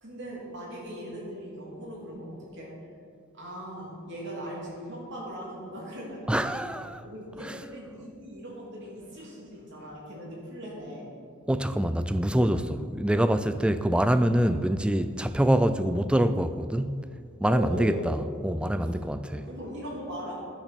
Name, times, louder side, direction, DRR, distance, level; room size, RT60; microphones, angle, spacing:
voice 1, 0.0-2.8 3.3-6.7 7.0-11.1 17.4-18.2 18.8-19.0 19.3-20.4, equal, 60° right, 2.9 m, -39 dB
voice 2, 6.3-7.0 7.4-7.5 11.5-17.0 17.4-19.4, right 1 dB, 5° right, 0.3 m, -25 dB
10.5 x 6.9 x 6.0 m
head